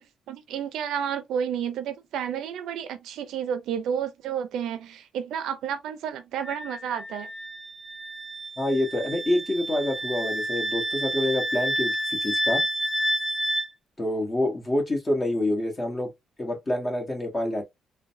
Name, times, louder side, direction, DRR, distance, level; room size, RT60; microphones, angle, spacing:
voice 1, 0.0-7.3, right 8 dB, 85° right, 0.5 m, -31 dB
Wind instrument woodwind instrument, 6.4-13.7, equal, 15° right, 0.5 m, -29 dB
voice 2, 8.6-12.6 14.0-16.1 16.4-17.6, left 1 dB, 25° left, 1.6 m, -27 dB
3.8 x 2.3 x 2.5 m
cardioid pair, 90°, 0 cm